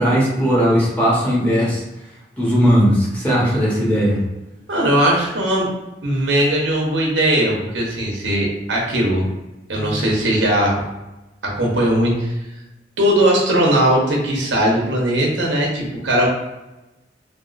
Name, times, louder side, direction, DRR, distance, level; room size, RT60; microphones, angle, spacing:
voice 1, 0.0-1.8 2.4-4.2 9.8-10.0, equal, 10° left, -6 dB, 0.9 m, -17 dB
voice 2, 4.7-5.7 6.0-9.3 9.7-10.8 11.4-12.3 13.0-16.3, right 1 dB, 90° right, -2 dB, 0.9 m, -19 dB
3.5 x 2.4 x 2.4 m, 0.99 s
head